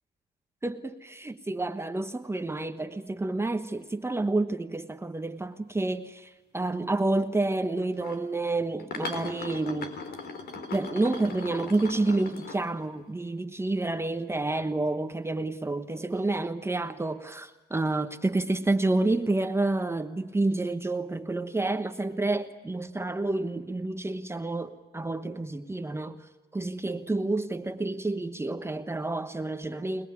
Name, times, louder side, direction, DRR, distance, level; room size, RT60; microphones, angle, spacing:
voice 1, 0.6-9.9 10.7-26.2 26.5-30.1, right 2 dB, 15° right, 1.2 m, -29 dB
sound 1, 7.9-8.2 8.8-13.1 16.1-16.4, left 4 dB, 60° left, 3.9 m, -39 dB
27.0 x 20.5 x 9.7 m
cardioid pair, 95°, 18 cm